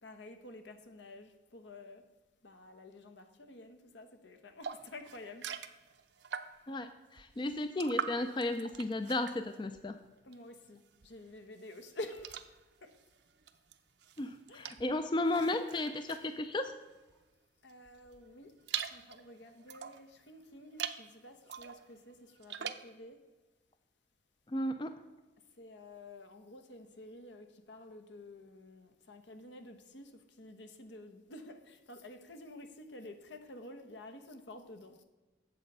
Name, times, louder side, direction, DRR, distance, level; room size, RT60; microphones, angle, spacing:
voice 1, 0.0-2.0 2.4-5.5 10.2-12.4 12.8-12.9 14.5-14.8 17.6-18.5 18.8-23.2 25.6-35.0, left 1 dB, 75° left, 1.0 m, -50 dB
sound 1, 4.6-6.8 7.2-10.6 10.9-17.2 17.7-20.1 20.6-21.1 21.5-22.9, right 8 dB, 65° right, 0.6 m, -44 dB
voice 2, 6.7-10.0 14.2-16.7 24.5-24.9, left 2 dB, 25° left, 0.4 m, -34 dB
8.2 x 7.2 x 5.3 m
head